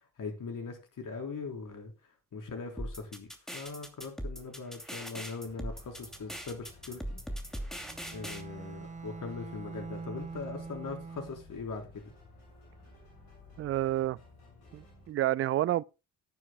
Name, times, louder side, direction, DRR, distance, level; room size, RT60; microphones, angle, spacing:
voice 1, 0.2-1.9 2.3-7.2 8.1-12.1, left 4 dB, 50° left, 4.0 m, -41 dB
sound 1, 2.8-8.4, equal, ahead, 2.7 m, -40 dB
sound 2, 5.4-15.1, left 3 dB, 75° left, 6.6 m, -55 dB
Bowed string instrument, 7.8-11.6, right 4 dB, 15° right, 0.8 m, -44 dB
voice 2, 13.6-14.2 14.7-15.8, right 14 dB, 35° right, 0.4 m, -29 dB
19.5 x 9.7 x 2.3 m
figure-of-eight pair, 45°, 42 cm